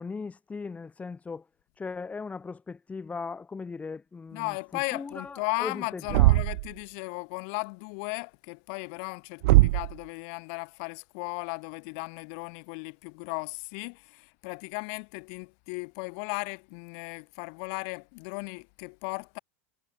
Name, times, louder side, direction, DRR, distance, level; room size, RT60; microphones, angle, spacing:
voice 1, 0.0-1.5 1.8-4.6 4.9-6.4, left 4 dB, 20° left, 3.8 m, -38 dB
voice 2, 4.3-19.4, left 40 dB or more, 60° left, 8.0 m, -36 dB
Thump thud, 6.1-6.7 9.4-10.0, right 21 dB, 65° right, 1.2 m, -20 dB
hypercardioid pair, 95°, 8 cm